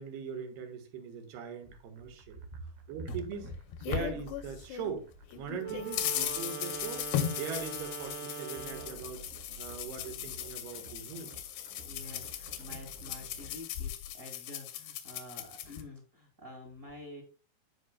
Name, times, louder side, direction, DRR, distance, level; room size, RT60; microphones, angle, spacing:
voice 1, 0.0-2.4 2.9-3.5 3.9-5.1 5.4-9.3 9.6-11.3, right 6 dB, 85° right, 5 dB, 3.4 m, -41 dB
sound 1, 1.6-13.6, right 2 dB, 65° right, 2.1 m, -54 dB
sound 2, 3.1-4.9 5.3-15.8, left 10 dB, 85° left, 3.0 m, -38 dB
voice 2, 3.1-3.5 11.8-17.2, equal, 30° right, 0 dB, 1.4 m, -47 dB
Wind instrument woodwind instrument, 5.6-9.1, right 8 dB, 50° right, 1.6 m, -42 dB
15.0 x 5.0 x 2.2 m, 0.34 s
omnidirectional pair, 4.6 m